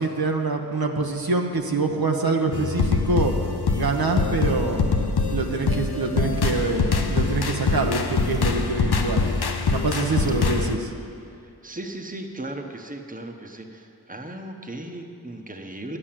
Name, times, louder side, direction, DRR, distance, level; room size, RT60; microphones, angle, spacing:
voice 1, 0.0-3.3 3.8-4.8 5.3-9.2 9.7-10.9, right 3 dB, 70° right, 2 dB, 1.0 m, -25 dB
sound 1, 2.5-10.7, left 4 dB, 85° left, 0.8 m, -24 dB
voice 2, 11.6-16.0, right 1 dB, 20° right, 3 dB, 1.1 m, -36 dB
10.0 x 8.8 x 7.5 m, 2.5 s
wide cardioid pair, 40°, 37 cm